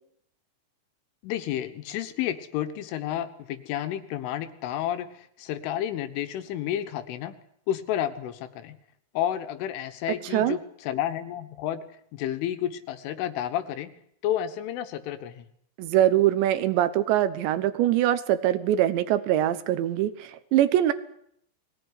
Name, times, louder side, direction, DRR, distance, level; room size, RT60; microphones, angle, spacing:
voice 1, 1.2-7.4 7.7-8.8 9.2-11.8 12.1-13.9 14.2-15.5, left 11 dB, 80° left, 10 dB, 3.6 m, -31 dB
voice 2, 15.8-20.9, right 12 dB, 70° right, 13 dB, 3.1 m, -23 dB
22.0 x 17.5 x 9.8 m, 0.70 s
omnidirectional pair, 5.8 m